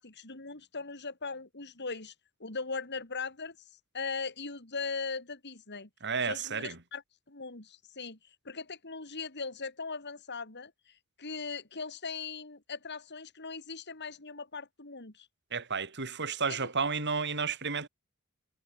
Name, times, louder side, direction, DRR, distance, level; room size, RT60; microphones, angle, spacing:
voice 1, 0.0-2.1 2.4-3.6 3.9-5.9 6.2-7.0 7.3-8.2 8.4-15.3 16.5-16.7, left 4 dB, 55° left, 4.2 m, -39 dB
voice 2, 6.0-6.8 15.5-17.9, right 5 dB, 55° right, 5.7 m, -32 dB
head